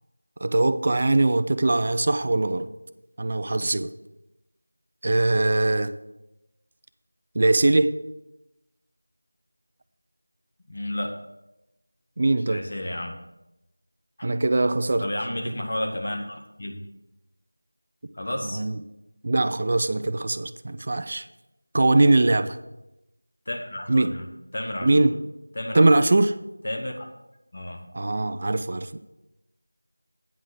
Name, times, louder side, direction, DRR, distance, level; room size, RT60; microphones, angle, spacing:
voice 1, 0.4-2.7 3.2-3.9 5.0-5.9 7.3-8.0 12.2-12.6 14.2-15.1 15.4-15.5 18.5-18.8 19.2-21.2 21.7-22.6 23.9-24.1 24.8-25.1 25.7-26.4 27.9-29.0, right 2 dB, 30° right, 0.3 m, -21 dB
voice 2, 10.7-11.2 12.4-13.2 14.2-14.3 15.0-16.8 18.1-18.6 23.5-25.1 25.5-25.9 26.6-26.9 27.5-27.8, left 1 dB, 40° left, 1.1 m, -32 dB
9.6 x 3.8 x 6.5 m
figure-of-eight pair, 175°, 0 cm